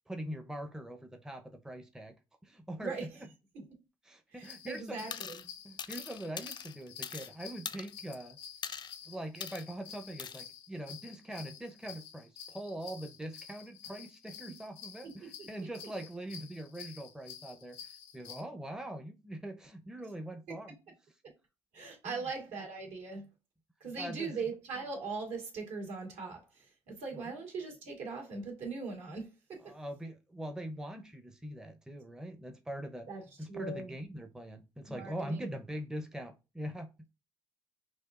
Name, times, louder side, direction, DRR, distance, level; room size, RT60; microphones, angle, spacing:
voice 1, 0.1-2.1 2.4-3.0 4.1-5.2 5.6-8.4 9.1-20.8 22.0-22.1 24.0-24.3 27.3-27.4 29.6-33.1 33.4-36.9, right 1 dB, 5° right, 0.7 m, -42 dB
voice 2, 2.8-3.2 3.5-3.6 4.3-5.4 15.0-15.7 21.7-23.3 23.8-29.6 33.1-33.2 33.5-33.9 34.9-35.5, right 4 dB, 70° right, 2.0 m, -40 dB
sound 1, 4.4-18.4, left 8 dB, 90° left, 0.9 m, -50 dB
sound 2, 5.1-5.5 5.8-7.3 7.7-8.2 8.6-8.9 9.4-9.6 10.2-10.4, left 7 dB, 40° left, 0.5 m, -41 dB
6.1 x 2.5 x 2.4 m
hypercardioid pair, 65°, 12 cm